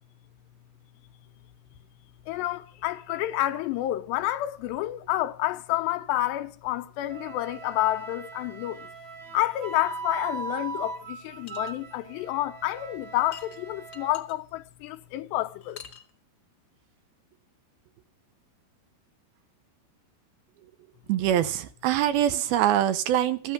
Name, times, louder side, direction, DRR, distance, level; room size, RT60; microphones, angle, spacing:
voice 1, 2.3-8.9 9.3-15.8, left 15 dB, 90° left, 3.1 m, -29 dB
Wind instrument woodwind instrument, 7.1-14.2, right 4 dB, 60° right, 2.1 m, -40 dB
sound 1, 11.5-11.7 13.3-14.3 15.6-16.1, left 8 dB, 55° left, 1.3 m, -45 dB
voice 2, 21.1-23.5, right 11 dB, 75° right, 2.4 m, -24 dB
14.5 x 11.5 x 6.0 m
omnidirectional pair, 4.8 m